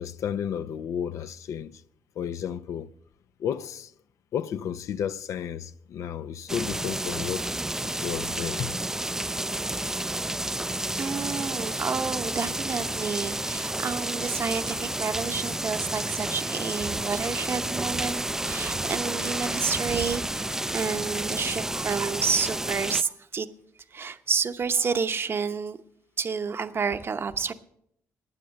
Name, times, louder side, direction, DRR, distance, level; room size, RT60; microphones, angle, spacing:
voice 1, 0.0-1.8 2.2-2.9 3.4-3.9 4.3-7.5 7.8-8.7, left 8 dB, 70° left, 0.5 m, -32 dB
sound 1, 6.5-23.0, right 1 dB, 10° right, 0.4 m, -31 dB
voice 2, 10.9-23.5 23.9-25.8 26.2-27.5, right 5 dB, 45° right, 0.9 m, -29 dB
12.5 x 9.3 x 6.5 m
supercardioid pair, 65°, 6 cm